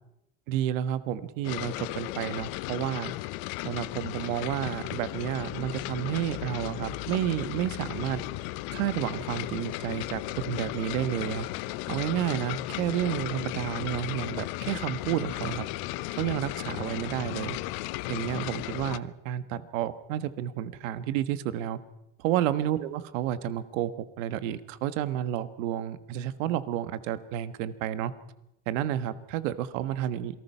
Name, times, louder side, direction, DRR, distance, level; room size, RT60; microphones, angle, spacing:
voice 1, 0.5-3.1 3.6-8.2 8.7-11.5 11.9-15.7 16.1-17.6 18.1-21.8 22.2-23.9 24.2-28.1 28.7-30.3, right 11 dB, 80° right, 13 dB, 1.4 m, -31 dB
sound 1, 1.4-19.0, left 19 dB, 75° left, 0.9 m, -35 dB
27.5 x 19.0 x 5.6 m, 0.87 s
supercardioid pair, 95°, 38 cm